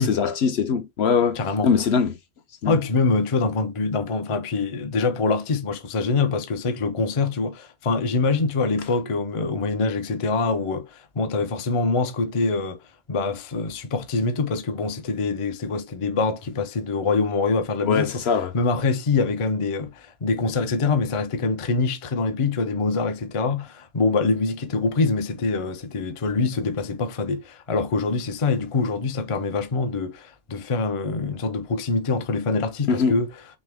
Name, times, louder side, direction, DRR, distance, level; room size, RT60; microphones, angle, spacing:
voice 1, 0.0-2.1 2.6-2.7 17.8-18.5 32.9-33.1, left 6 dB, 60° left, 0.9 m, -22 dB
voice 2, 1.3-1.8 2.6-12.8 13.1-33.4, left 4 dB, 40° left, 0.5 m, -24 dB
6.1 x 2.1 x 3.4 m
omnidirectional pair, 1.3 m